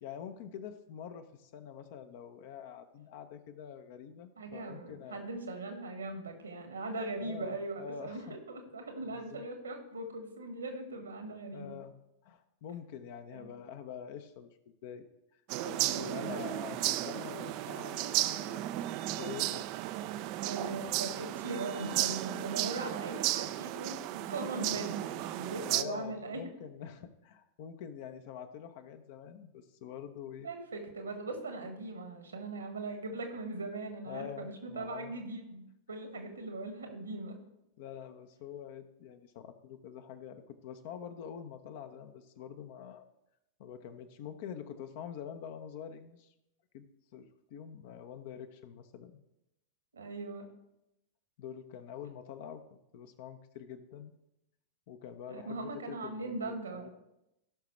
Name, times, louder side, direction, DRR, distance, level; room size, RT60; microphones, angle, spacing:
voice 1, 0.0-5.3 7.2-8.4 9.1-9.4 11.5-11.9 12.2-14.6 14.8-15.1 15.3-19.8 25.7-30.5 34.1-35.1 37.8-43.1 43.6-46.3 46.7-46.9 47.1-49.2 51.4-54.2 54.9-56.9, left 8 dB, 50° left, 8 dB, 0.8 m, -46 dB
voice 2, 4.4-11.7 13.3-13.5 15.8-16.3 20.4-26.5 30.4-37.3 49.9-50.4 55.3-56.9, right 2 dB, 70° right, 5 dB, 1.6 m, -40 dB
sound 1, 15.5-25.8, right 15 dB, 45° right, 0.4 m, -34 dB
16.5 x 5.8 x 3.2 m, 0.87 s
figure-of-eight pair, 90°, 0 cm